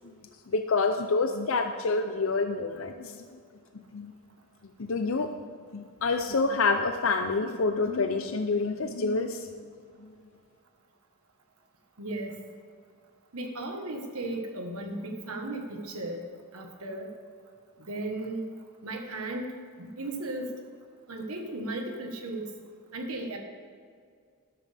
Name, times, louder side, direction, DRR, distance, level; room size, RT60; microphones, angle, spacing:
voice 1, 0.5-3.3 3.7-4.1 4.8-5.3 5.7-9.7 10.0-10.1, left 3 dB, 65° left, 7 dB, 0.6 m, -28 dB
voice 2, 12.0-12.5 13.3-16.2 16.5-17.1 17.8-18.4 18.8-19.5 19.8-20.5 21.1-22.5 22.9-23.4, right 2 dB, 85° right, 3 dB, 1.5 m, -35 dB
13.5 x 11.5 x 3.5 m, 2.1 s
head